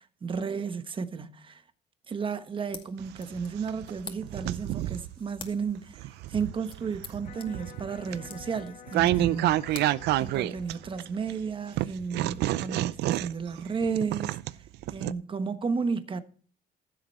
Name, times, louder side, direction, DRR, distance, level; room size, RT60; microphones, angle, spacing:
voice 1, 0.2-1.6 2.1-14.4 14.9-16.2, right 5 dB, 30° right, 1.2 m, -33 dB
sound 1, 2.4-11.0, left 5 dB, 30° left, 2.2 m, -50 dB
sound 2, 3.0-5.1 5.7-11.3 11.8-15.1, right 15 dB, 80° right, 0.6 m, -29 dB
Electric guitar, 7.2-13.3, left 9 dB, 50° left, 1.4 m, -51 dB
15.5 x 7.8 x 4.2 m
cardioid pair, 110°, 17 cm